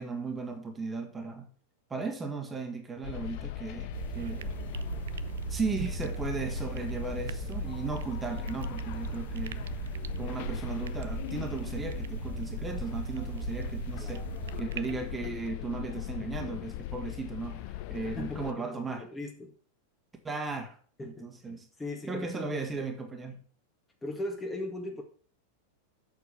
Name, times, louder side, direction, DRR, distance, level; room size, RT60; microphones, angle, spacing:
voice 1, 0.0-1.5 1.9-4.5 5.5-9.7 10.2-14.2 14.6-19.1 20.2-21.7 22.0-23.4, right 4 dB, 15° right, 4 dB, 1.9 m, -36 dB
sound 1, 3.0-18.5, left 13 dB, 45° left, 0.5 m, -39 dB
sound 2, 3.9-15.1, right 11 dB, 60° right, 0.5 m, -38 dB
voice 2, 18.0-19.5 21.0-21.3 21.8-22.6 24.0-25.0, left 1 dB, 15° left, 3 dB, 1.7 m, -39 dB
8.2 x 6.8 x 5.6 m, 0.43 s
figure-of-eight pair, 90°, 0 cm